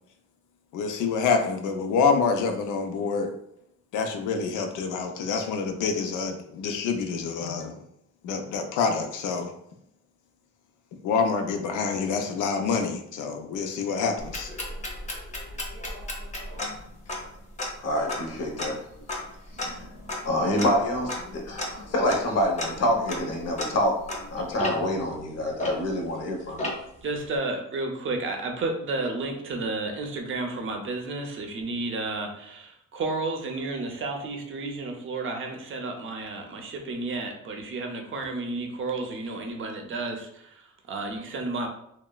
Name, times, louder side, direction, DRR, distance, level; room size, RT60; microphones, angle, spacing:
voice 1, 0.7-3.3 3.9-7.8 8.2-9.5 11.0-14.5, left 5 dB, 85° left, 5 dB, 0.5 m, -27 dB
sound 1, 14.2-26.2 26.6-27.0, left 1 dB, 25° left, 0.7 m, -35 dB
voice 2, 17.8-18.8 19.6-19.7 20.3-24.0 24.3-26.7, left 1 dB, 55° left, 1 dB, 0.8 m, -26 dB
voice 3, 27.0-41.7, right 3 dB, 40° right, 4 dB, 0.6 m, -32 dB
2.9 x 2.1 x 2.2 m, 0.76 s
cardioid pair, 90°, 30 cm